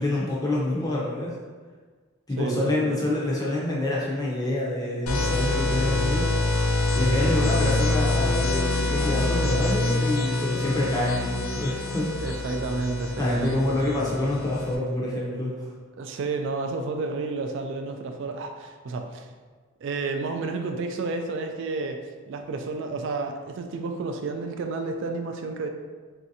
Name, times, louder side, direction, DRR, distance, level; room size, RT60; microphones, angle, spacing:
voice 1, 0.0-1.3 2.3-6.3 6.9-12.1 13.2-15.7, left 1 dB, 15° left, -5 dB, 0.6 m, -27 dB
voice 2, 2.4-3.1 7.1-7.3 12.2-13.8 16.0-19.3 19.8-25.7, right 3 dB, 55° right, 5 dB, 0.3 m, -31 dB
sound 1, 5.1-14.7, left 2 dB, 85° left, 0.5 m, -25 dB
3.2 x 2.6 x 2.7 m, 1.5 s
head